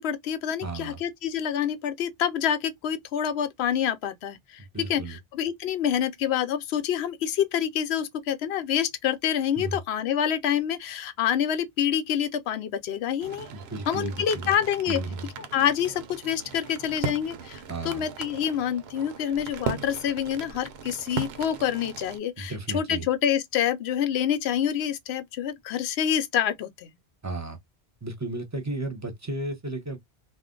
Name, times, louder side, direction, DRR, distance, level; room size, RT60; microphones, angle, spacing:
voice 1, 0.0-4.6 4.9-13.5 13.9-15.0 15.4-26.9, left 9 dB, 90° left, 0.8 m, -27 dB
voice 2, 0.6-1.0 4.7-5.2 9.6-9.8 13.5-14.6 14.9-15.3 17.7-18.1 22.4-23.1 27.2-27.6 28.0-30.0, right 2 dB, 20° right, 0.7 m, -34 dB
sound 1, 13.2-22.2, right 5 dB, 80° right, 0.8 m, -38 dB
2.4 x 2.2 x 3.7 m
omnidirectional pair, 1.0 m